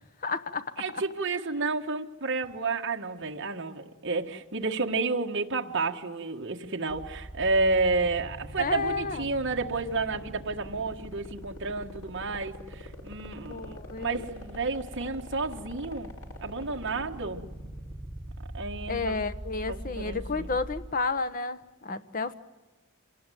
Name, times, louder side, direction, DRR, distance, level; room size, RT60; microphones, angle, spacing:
voice 1, 0.2-0.7 8.6-9.3 13.5-14.2 18.9-22.3, left 4 dB, 40° left, 11 dB, 1.1 m, -31 dB
voice 2, 0.8-17.4 18.5-19.2 19.7-20.5, right 3 dB, 55° right, 1 dB, 1.6 m, -31 dB
sound 1, 6.9-20.9, equal, 90° left, 5.5 m, -41 dB
27.0 x 19.0 x 9.3 m, 1.2 s
head